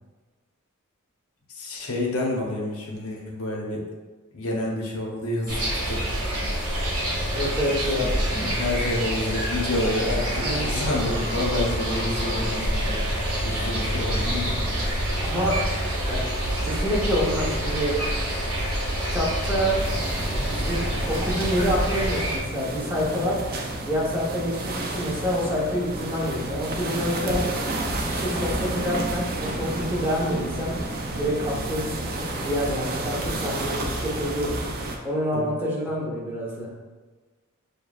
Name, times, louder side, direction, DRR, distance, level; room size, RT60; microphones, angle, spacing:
voice 1, 1.5-3.8 4.3-6.0 6.3-6.4 7.8-14.7 35.3-35.5, left 2 dB, 70° left, -2 dB, 0.9 m, -29 dB
sound 1, 5.5-22.4, right 1 dB, 80° right, 1.3 m, -27 dB
voice 2, 7.3-8.1 10.4-10.7 15.2-15.6 16.1-16.3 16.6-18.0 19.1-19.8 20.5-23.4 23.8-27.4 27.9-30.7 31.2-31.8 32.4-36.7, equal, 10° right, -6 dB, 1.1 m, -27 dB
sound 2, 9.7-13.6, equal, 20° left, 0.8 m, -41 dB
sound 3, 19.8-35.0, right 2 dB, 45° right, 0.4 m, -31 dB
6.6 x 2.2 x 2.4 m, 1.3 s
head